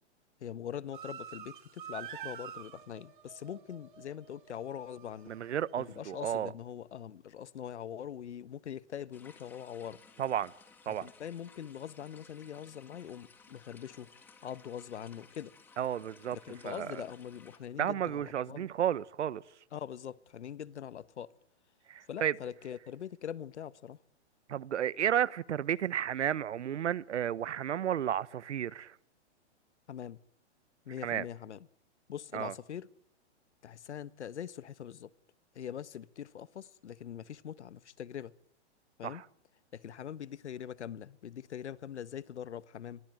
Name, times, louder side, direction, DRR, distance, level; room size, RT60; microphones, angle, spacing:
voice 1, 0.4-5.3 5.8-10.0 10.9-14.1 14.4-15.5 16.3-18.7 19.7-21.3 22.1-24.0 29.9-30.2 30.8-31.6 32.1-32.9 33.6-35.1 35.5-38.3 39.0-39.2 39.7-43.0, left 9 dB, 75° left, 1.4 m, -43 dB
sound 1, 0.9-6.5, right 9 dB, 45° right, 2.8 m, -48 dB
voice 2, 5.3-6.5 10.2-10.5 10.9-11.1 15.8-16.4 16.6-17.0 17.8-19.4 21.9-22.4 24.5-28.9 31.0-31.3 32.3-32.5 39.0-39.2, right 10 dB, 75° right, 1.1 m, -32 dB
sound 2, 9.1-17.6, left 5 dB, 5° left, 1.7 m, -58 dB
28.0 x 23.0 x 9.2 m
hypercardioid pair, 180°, 35 cm